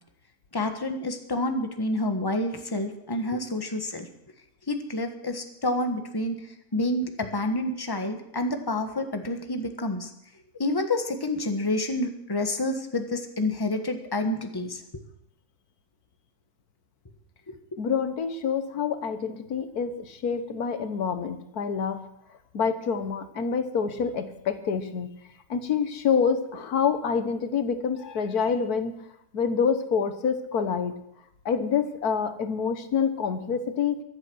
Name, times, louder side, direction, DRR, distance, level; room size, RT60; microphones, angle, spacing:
voice 1, 0.5-4.1 4.7-6.4 6.7-10.1 10.6-14.8, left 1 dB, 15° left, 6 dB, 1.4 m, -28 dB
voice 2, 17.8-22.0 22.5-25.1 25.5-28.9 29.3-30.9 31.4-34.0, left 6 dB, 90° left, 9 dB, 1.7 m, -27 dB
23.0 x 8.0 x 6.3 m, 0.80 s
omnidirectional pair, 1.6 m